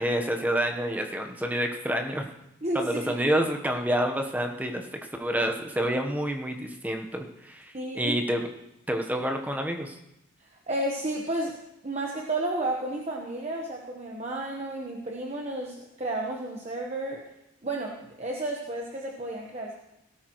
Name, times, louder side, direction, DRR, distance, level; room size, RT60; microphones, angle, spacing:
voice 1, 0.0-2.3 2.7-4.9 5.2-8.5 8.9-10.0, equal, 5° right, 4 dB, 1.0 m, -28 dB
voice 2, 2.6-3.1 7.7-8.2 10.7-11.6 11.8-17.2 17.6-19.7, right 1 dB, 30° right, 0 dB, 1.1 m, -32 dB
18.0 x 13.0 x 3.1 m, 0.85 s
head